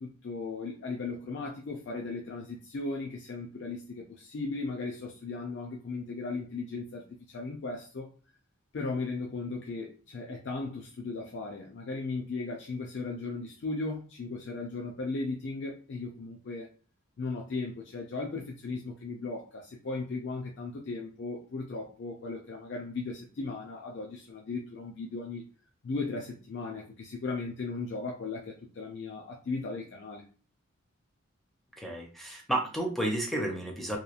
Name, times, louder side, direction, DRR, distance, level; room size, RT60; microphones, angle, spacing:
voice 1, 0.0-8.1 8.7-16.7 17.2-25.4 25.8-30.2, left 3 dB, 60° left, 0 dB, 0.4 m, -37 dB
voice 2, 31.8-34.0, right 1 dB, ahead, 0 dB, 0.4 m, -31 dB
2.9 x 2.2 x 2.4 m, 0.39 s
head